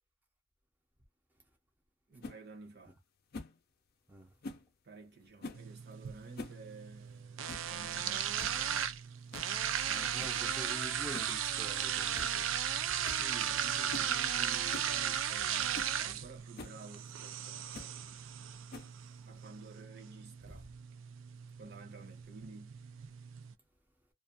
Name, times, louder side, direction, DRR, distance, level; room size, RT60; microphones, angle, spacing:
voice 1, 2.1-2.9 4.8-8.9 13.1-18.3 19.2-20.7 21.6-22.8, right 3 dB, 50° right, 0.8 m, -52 dB
sound 1, 2.2-2.4 3.3-3.6 4.4-4.7 5.4-5.7 6.2-6.6 6.9-7.0 7.5-7.7 8.1-8.2 8.4-8.6 9.3-9.5 10.2-10.4 11.1-11.4 11.7-11.8 12.1-12.3 12.6-12.7 13.0-13.3 13.9-14.1 14.7-14.9 15.4-15.5 15.7-15.9 16.6-16.8 17.7-18.0 18.7-19.1, left 2 dB, 50° left, 0.5 m, -46 dB
sound 2, 5.5-23.5, right 9 dB, 65° right, 0.4 m, -36 dB
voice 2, 9.8-12.4, equal, 10° right, 0.5 m, -47 dB
2.4 x 2.4 x 2.5 m
head